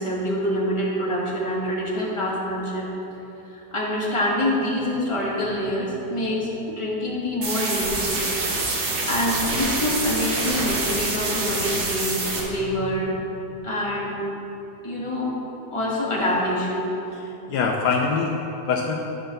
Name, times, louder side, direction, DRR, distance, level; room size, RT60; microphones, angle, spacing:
voice 1, 0.0-2.9 3.5-8.2 9.1-13.2 13.6-14.2 14.8-15.3 15.7-16.9, left 1 dB, 20° left, -6 dB, 1.7 m, -26 dB
sound 1, 7.4-12.4, right 2 dB, 65° right, 1.9 m, -26 dB
voice 2, 17.1-18.9, left 5 dB, 75° left, 1 dB, 1.2 m, -24 dB
11.5 x 3.9 x 6.7 m, 3.0 s
omnidirectional pair, 1.8 m